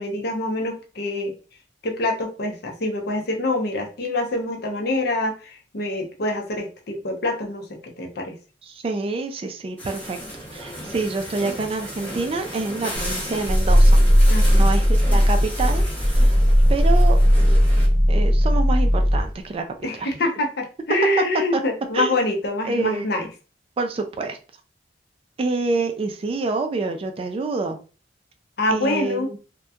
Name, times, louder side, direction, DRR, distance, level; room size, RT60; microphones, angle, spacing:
voice 1, 0.0-1.3 1.8-8.3 14.3-14.7 19.8-23.3 28.6-29.3, left 2 dB, 60° left, 2 dB, 0.6 m, -25 dB
voice 2, 8.6-10.2 10.5-14.0 14.5-16.4 16.7-17.2 18.1-19.6 20.0-20.1 21.5-21.6 21.9-22.1 22.6-23.1 23.8-24.4 25.4-27.8 28.7-29.4, right 3 dB, 30° right, 5 dB, 0.3 m, -27 dB
sound 1, 9.8-17.9, equal, 10° left, 0.8 m, -34 dB
Growling, 13.0-19.3, equal, 30° left, 0.9 m, -16 dB
2.7 x 2.2 x 2.3 m, 0.36 s
head